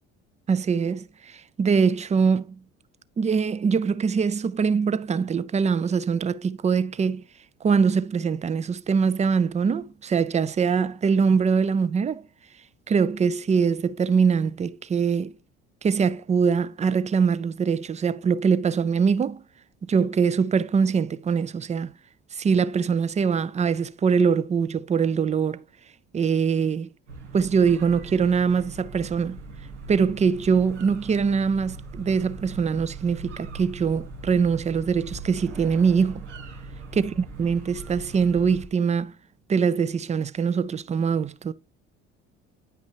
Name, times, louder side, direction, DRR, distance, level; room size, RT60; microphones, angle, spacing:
voice 1, 0.5-2.6 3.2-7.2 7.6-12.2 12.9-15.3 15.8-19.4 19.8-21.9 22.3-25.6 26.1-26.9 27.3-29.4 29.9-36.2 36.9-39.1 39.5-41.5, right 6 dB, 20° right, 0.5 m, -23 dB
sound 1, 27.1-38.7, right 3 dB, 90° right, 1.3 m, -40 dB
9.3 x 5.8 x 3.0 m
hypercardioid pair, 60°, 34 cm